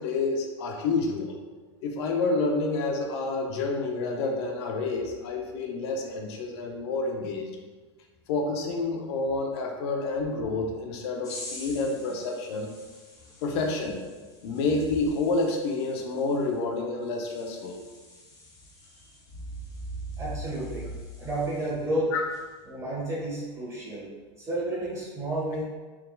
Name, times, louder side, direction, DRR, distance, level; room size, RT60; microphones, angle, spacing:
voice 1, 0.0-1.4 1.8-7.5 8.3-12.7 13.4-14.1 14.4-17.8 22.1-22.2, left 3 dB, 65° left, 2 dB, 0.8 m, -29 dB
sound 1, 11.2-21.9 22.3-22.6, left 2 dB, 25° left, 1.0 m, -49 dB
voice 2, 20.1-20.9 21.2-22.1 22.6-24.0 24.4-25.6, right 1 dB, 20° right, -7 dB, 1.4 m, -31 dB
4.3 x 3.6 x 2.2 m, 1.3 s
hypercardioid pair, 105°, 15 cm